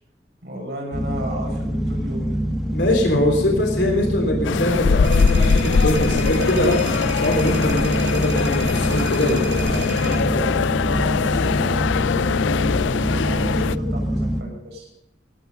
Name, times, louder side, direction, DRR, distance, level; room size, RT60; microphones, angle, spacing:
voice 1, 0.4-2.4 10.7-14.9, equal, 65° right, 0 dB, 6.2 m, -35 dB
sound 1, 0.9-14.4, equal, ahead, 1.6 m, -25 dB
voice 2, 2.7-10.7, left 1 dB, 70° left, 1 dB, 3.5 m, -23 dB
sound 2, 4.4-13.8, left 5 dB, 85° left, 0.4 m, -22 dB
sound 3, 5.0-10.2, right 3 dB, 90° right, 2.5 m, -36 dB
20.0 x 9.2 x 5.3 m, 0.81 s
head